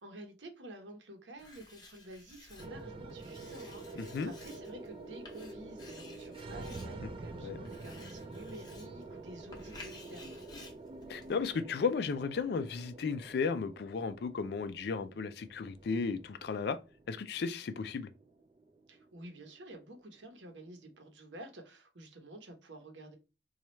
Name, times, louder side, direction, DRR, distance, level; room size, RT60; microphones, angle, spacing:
voice 1, 0.0-10.4 18.9-23.2, right 1 dB, 80° right, 0.9 m, -50 dB
Writing, 1.4-11.6, left 2 dB, 20° left, 0.7 m, -55 dB
sound 1, 2.6-21.0, right 3 dB, 30° right, 0.3 m, -48 dB
voice 2, 4.0-4.3 7.0-7.1 7.4-7.6 11.1-16.8 17.1-18.1, left 5 dB, 60° left, 0.3 m, -34 dB
4.1 x 2.3 x 3.0 m
head